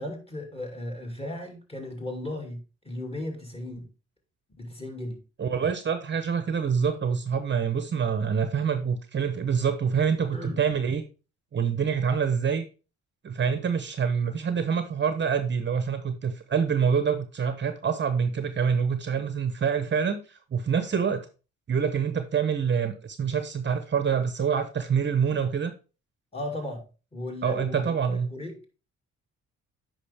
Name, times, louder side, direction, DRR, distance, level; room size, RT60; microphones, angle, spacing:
voice 1, 0.0-3.9 4.6-5.2 10.1-10.6 26.3-26.9 27.1-28.6, left 1 dB, 20° left, 3 dB, 2.5 m, -36 dB
voice 2, 5.4-11.0 11.5-12.6 13.2-21.3 21.7-25.7 27.4-28.3, right 6 dB, 35° right, 9 dB, 0.9 m, -26 dB
8.6 x 5.3 x 3.5 m, 0.33 s
cardioid pair, 90°, 30 cm